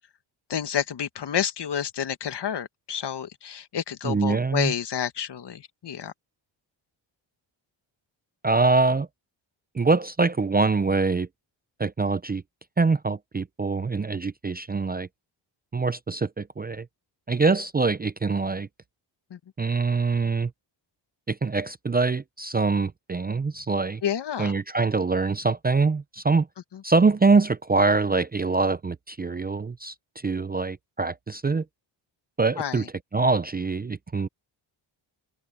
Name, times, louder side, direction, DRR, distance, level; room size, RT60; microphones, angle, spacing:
voice 1, 0.5-6.1 19.3-19.4 24.0-24.5 26.7-26.8 32.6-32.9, left 9 dB, 60° left, 1.7 m, -29 dB
voice 2, 4.0-4.7 8.4-9.1 9.7-11.3 11.8-12.4 12.8-15.1 15.7-16.9 17.3-18.7 19.6-20.5 21.3-24.0 24.4-26.5 26.8-31.6 32.4-32.8 33.1-34.3, right 4 dB, 20° right, 0.6 m, -24 dB
open air
cardioid pair, 90°, 47 cm